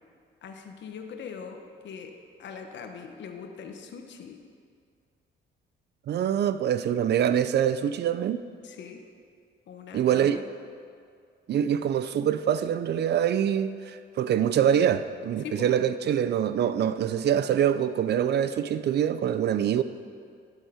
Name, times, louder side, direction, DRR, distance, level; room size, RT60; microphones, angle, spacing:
voice 1, 0.4-2.1 2.4-4.4 8.6-9.0 9.7-10.5 15.4-15.7, left 6 dB, 65° left, 1.0 m, -41 dB
voice 2, 6.1-8.4 9.9-10.4 11.5-19.8, right 9 dB, 60° right, 0.4 m, -25 dB
12.0 x 6.4 x 5.0 m
cardioid pair, 90°, 20 cm